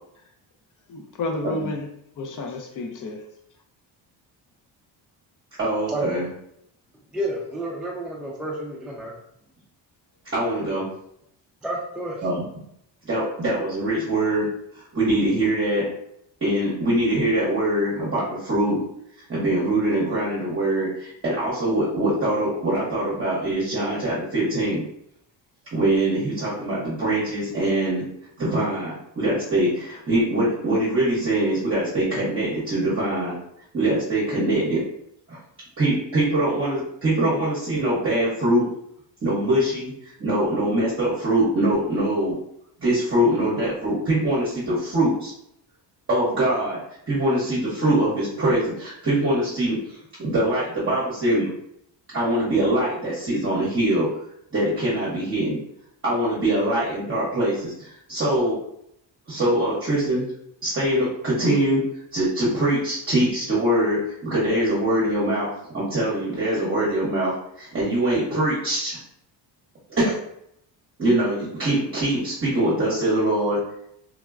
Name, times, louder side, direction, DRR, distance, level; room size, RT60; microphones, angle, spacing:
voice 1, 0.9-1.9 2.2-3.2, left 2 dB, 45° left, 0.6 m, -30 dB
voice 2, 5.6-6.3 10.3-10.8 12.2-12.5 13.0-14.5 14.7-15.8 16.4-18.8 19.3-24.8 25.7-28.0 28.4-33.4 33.7-34.8 35.3-35.4 35.8-38.6 39.2-42.3 42.8-45.3 46.1-46.8 47.1-49.8 50.2-51.5 52.1-54.1 54.5-55.6 56.0-58.6 59.3-60.2 60.6-61.8 62.1-67.3 67.6-69.0 69.9-70.2 71.0-73.6, right 1 dB, 30° right, 0.9 m, -23 dB
voice 3, 7.1-9.1 11.6-12.3, right 1 dB, ahead, 0.3 m, -30 dB
3.4 x 2.1 x 2.4 m
cardioid pair, 110°, 45 cm